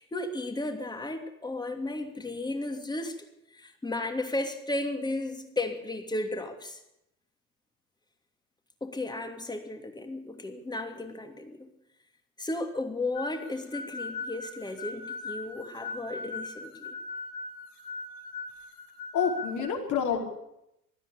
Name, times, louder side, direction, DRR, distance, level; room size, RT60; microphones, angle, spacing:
voice 1, 0.0-3.2 3.5-6.8 8.8-11.7 12.4-16.9, left 2 dB, 10° left, 6 dB, 2.9 m, -34 dB
sound 1, 13.1-19.7, left 3 dB, 60° left, 6.3 m, -39 dB
voice 2, 19.1-20.2, left 7 dB, 40° left, 2 dB, 4.9 m, -27 dB
21.0 x 14.0 x 8.8 m, 0.83 s
figure-of-eight pair, 75°, 45 cm